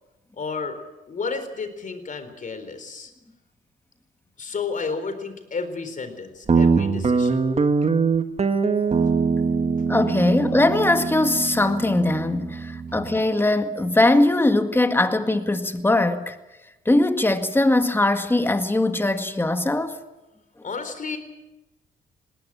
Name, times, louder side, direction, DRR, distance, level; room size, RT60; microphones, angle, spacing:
voice 1, 0.3-0.8 1.1-3.1 4.4-7.4 9.0-9.1 20.6-21.2, left 4 dB, 40° left, 4.1 m, -32 dB
Guitar, 6.5-13.2, right 5 dB, 30° right, 1.7 m, -23 dB
voice 2, 9.9-16.4 16.9-20.0, left 2 dB, 10° left, 1.8 m, -21 dB
20.0 x 18.5 x 8.8 m
cardioid pair, 90°, 20 cm